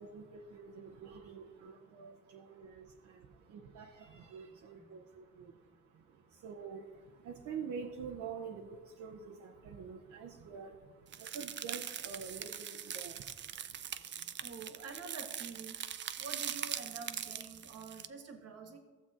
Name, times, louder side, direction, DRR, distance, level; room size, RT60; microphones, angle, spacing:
voice 1, 0.0-14.7, right 6 dB, 75° right, 0 dB, 0.8 m, -47 dB
sound 1, 11.1-18.1, right 9 dB, 40° right, 0.4 m, -42 dB
voice 2, 14.2-15.8 16.2-18.8, right 5 dB, 55° right, 3 dB, 1.4 m, -47 dB
15.0 x 7.3 x 2.5 m, 1.4 s
cardioid pair, 90°, 30 cm